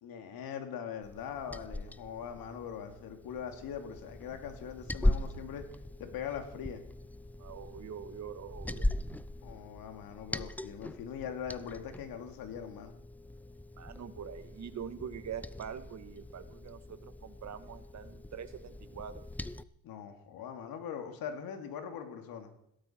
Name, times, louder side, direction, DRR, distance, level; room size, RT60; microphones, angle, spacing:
voice 1, 0.0-5.6 6.0-6.8 9.4-12.9 19.8-22.5, left 8 dB, 60° left, 6 dB, 2.7 m, -41 dB
Liquid, 1.0-19.6, left 1 dB, 5° left, 0.5 m, -39 dB
voice 2, 7.4-8.9 13.8-19.3, right 8 dB, 45° right, 10 dB, 1.8 m, -44 dB
17.0 x 13.0 x 4.6 m, 0.78 s
supercardioid pair, 80°, 39 cm